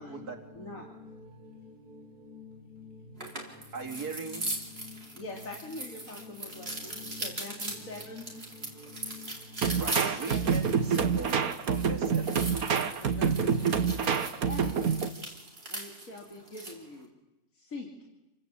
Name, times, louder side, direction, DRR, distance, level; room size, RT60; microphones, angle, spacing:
voice 1, 0.0-9.6, left 4 dB, 30° left, 6.1 m, -50 dB
sound 1, 3.2-16.8, right 1 dB, 40° right, 4.7 m, -40 dB
voice 2, 3.7-4.5 8.7-8.8 9.8-12.4 14.6-14.8, right 4 dB, 90° right, 3.1 m, -39 dB
voice 3, 5.1-8.3 10.0-10.6 13.0-13.7 14.4-14.8 15.7-17.1 17.5-17.9, left 2 dB, 60° left, 3.5 m, -43 dB
sound 2, 9.6-15.1, right 6 dB, 70° right, 1.8 m, -27 dB
29.0 x 24.5 x 8.5 m
omnidirectional pair, 1.6 m